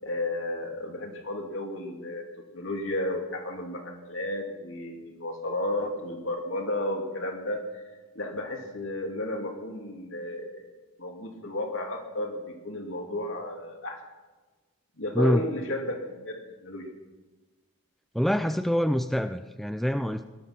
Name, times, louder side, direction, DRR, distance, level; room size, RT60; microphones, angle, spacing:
voice 1, 0.0-2.2 2.5-10.7 11.0-14.0 15.0-16.9, left 1 dB, 60° left, 2 dB, 2.9 m, -33 dB
voice 2, 18.1-20.3, equal, ahead, 9 dB, 0.4 m, -25 dB
18.5 x 12.0 x 6.1 m, 1.3 s
head